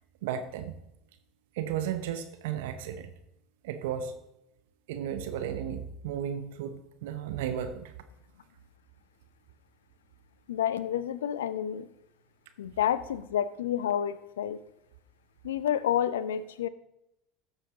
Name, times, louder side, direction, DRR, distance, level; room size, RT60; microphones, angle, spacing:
voice 1, 0.2-0.8 1.6-3.1 3.6-4.1 4.9-7.9, right 9 dB, 70° right, 9 dB, 0.7 m, -34 dB
voice 2, 10.5-11.9 12.6-14.6 15.4-16.7, left 10 dB, 75° left, 16 dB, 0.5 m, -29 dB
14.0 x 7.2 x 3.9 m, 0.85 s
figure-of-eight pair, 70°, 0 cm